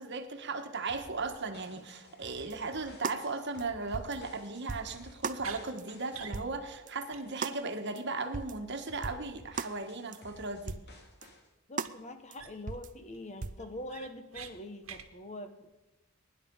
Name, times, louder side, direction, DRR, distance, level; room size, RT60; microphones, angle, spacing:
voice 1, 0.0-10.8, right 3 dB, 55° right, 6 dB, 1.5 m, -37 dB
sound 1, 0.9-7.8 8.2-8.5 8.9-11.5, left 2 dB, 50° left, 2.4 m, -55 dB
sound 2, 2.5-2.6 3.0-3.2 3.6-3.7 3.9-4.2 4.7-4.9 5.2-5.4 5.8-5.9 6.3-6.5 6.9-7.0 7.4-7.6 8.0-8.1 8.3-8.6 9.0-9.2 9.6-9.7 10.1-10.2 10.7-10.9 11.2-11.3 11.8-11.9 12.3-12.4 12.7-12.9 13.4-13.6, right 4 dB, 35° right, 0.6 m, -37 dB
sound 3, 5.4-5.6 6.1-6.4 6.7-6.8 7.1-7.2 7.5-7.6 11.8-11.9 12.4-12.8 13.1-13.2 13.6-14.5 14.8-15.1, right 8 dB, 70° right, 1.5 m, -45 dB
voice 2, 11.7-15.7, left 1 dB, 35° left, 8 dB, 1.3 m, -44 dB
21.0 x 11.0 x 5.4 m, 1.0 s
head